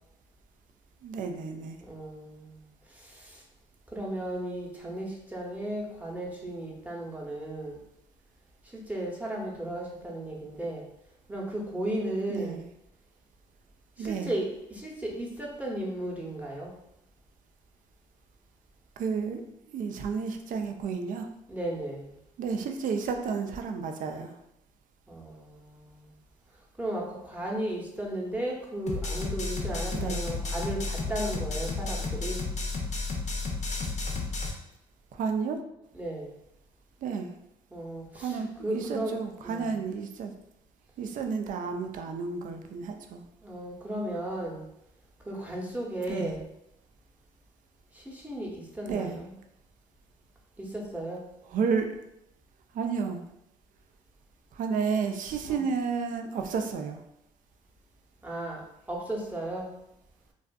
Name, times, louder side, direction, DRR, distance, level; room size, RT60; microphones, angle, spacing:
voice 1, 1.0-1.8 12.3-12.6 14.0-14.3 19.0-19.4 19.7-21.3 22.4-24.4 29.9-30.2 35.1-35.6 37.0-37.3 38.1-38.5 38.7-40.3 41.0-43.2 46.1-46.4 48.9-49.2 51.5-52.0 52.7-53.2 54.5-57.0, right 5 dB, 55° right, 5 dB, 0.4 m, -31 dB
voice 2, 1.8-3.4 3.9-7.8 8.6-10.9 11.3-12.6 14.0-16.7 21.5-22.2 25.1-26.2 26.8-32.4 35.9-36.4 37.7-39.1 39.4-39.7 43.4-44.6 45.2-46.4 47.9-49.3 50.6-51.2 55.5-55.7 58.2-59.7, right 1 dB, 10° right, -2 dB, 0.8 m, -35 dB
sound 1, 28.9-34.5, left 3 dB, 45° left, 0.6 m, -32 dB
2.5 x 2.3 x 2.3 m, 0.82 s
hypercardioid pair, 55°, 16 cm